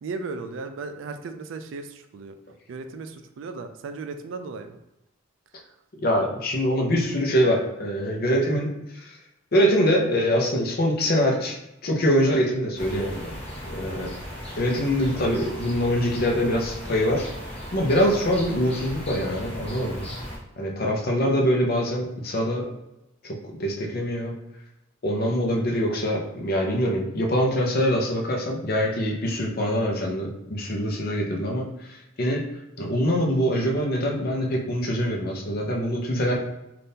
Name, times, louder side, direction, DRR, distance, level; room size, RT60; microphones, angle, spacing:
voice 1, 0.0-2.3 2.7-4.8, right 4 dB, 75° right, 8 dB, 0.3 m, -36 dB
voice 2, 6.0-8.7 9.0-9.2 9.5-11.6 11.8-13.3 13.7-14.1 14.6-17.3 17.7-20.0 20.6-22.6 23.2-24.4 25.0-32.4 32.8-36.3, equal, 50° left, 0 dB, 0.7 m, -24 dB
sound 1, 12.8-20.4, equal, 30° left, 1.0 m, -36 dB
3.5 x 2.5 x 2.7 m, 0.90 s
head